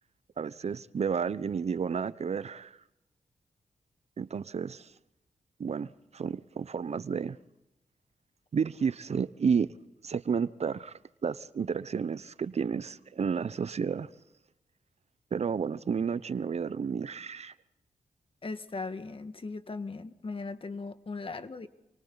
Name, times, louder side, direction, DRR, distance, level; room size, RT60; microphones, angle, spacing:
voice 1, 0.4-2.8 4.2-4.9 5.6-7.4 8.5-9.7 10.0-14.1 15.3-17.5, right 6 dB, 55° right, 0.8 m, -31 dB
voice 2, 18.4-21.7, left 3 dB, 45° left, 1.8 m, -38 dB
29.0 x 23.5 x 4.1 m
supercardioid pair, 45°, 13 cm